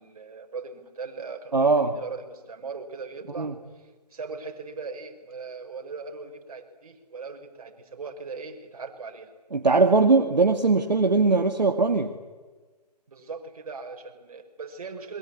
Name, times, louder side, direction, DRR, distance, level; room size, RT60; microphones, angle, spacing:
voice 1, 0.0-9.3 13.1-15.2, right 4 dB, 55° right, 4 dB, 5.3 m, -39 dB
voice 2, 1.5-1.9 3.4-3.5 9.5-12.1, right 3 dB, 80° right, 3 dB, 2.5 m, -20 dB
28.5 x 22.5 x 8.5 m, 1.3 s
figure-of-eight pair, 150°, 21 cm